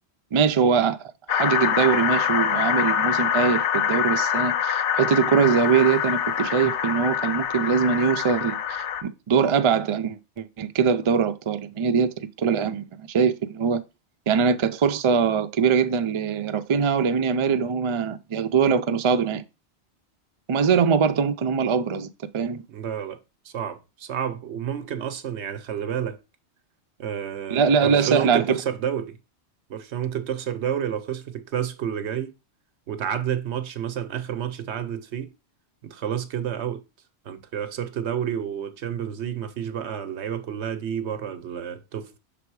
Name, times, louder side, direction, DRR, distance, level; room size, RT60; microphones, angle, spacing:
voice 1, 0.3-13.8 14.3-19.4 20.5-22.6 27.5-28.6, right 6 dB, 55° right, 0.3 m, -22 dB
sound 1, 1.3-9.0, left 8 dB, 75° left, 0.9 m, -25 dB
voice 2, 22.7-26.2 27.0-29.2 29.7-32.3 32.9-35.3 35.8-36.8 37.2-42.1, right 9 dB, 75° right, 1.0 m, -30 dB
6.1 x 3.4 x 4.6 m
omnidirectional pair, 1.2 m